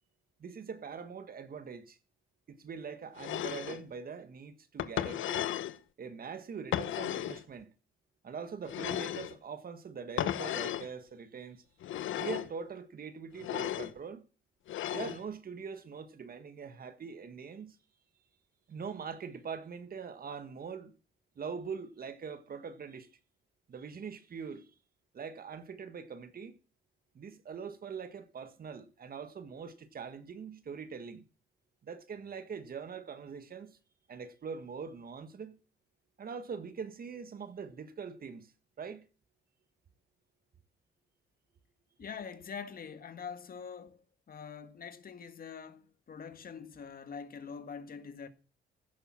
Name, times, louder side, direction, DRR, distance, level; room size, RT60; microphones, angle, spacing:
voice 1, 0.4-2.0 2.5-5.5 6.0-7.7 8.2-11.6 12.1-14.2 14.9-17.8 18.7-20.9 21.3-23.1 23.7-24.7 25.1-26.6 27.1-31.2 31.8-33.8 34.1-35.6 36.2-38.5 38.8-39.1, right 6 dB, 50° right, 1.6 m, -43 dB
sound 1, 3.2-3.8 4.8-5.8 6.7-7.4 8.7-9.4 10.2-10.9 11.8-12.5 13.4-13.9 14.7-15.2, left 12 dB, 80° left, 1.0 m, -35 dB
voice 2, 42.0-48.3, left 6 dB, 45° left, 1.7 m, -44 dB
15.5 x 6.9 x 7.4 m
cardioid pair, 90°, 20 cm